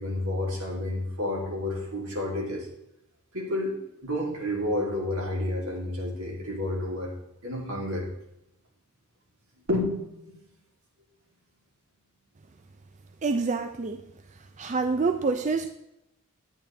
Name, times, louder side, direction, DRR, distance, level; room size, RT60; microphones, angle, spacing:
voice 1, 0.0-2.7 3.3-7.1 7.4-8.1 9.7-10.4, left 1 dB, 80° right, -2 dB, 2.9 m, -30 dB
voice 2, 13.2-14.0 14.6-15.7, right 4 dB, 35° right, 8 dB, 0.4 m, -26 dB
10.5 x 8.8 x 3.3 m, 0.85 s
head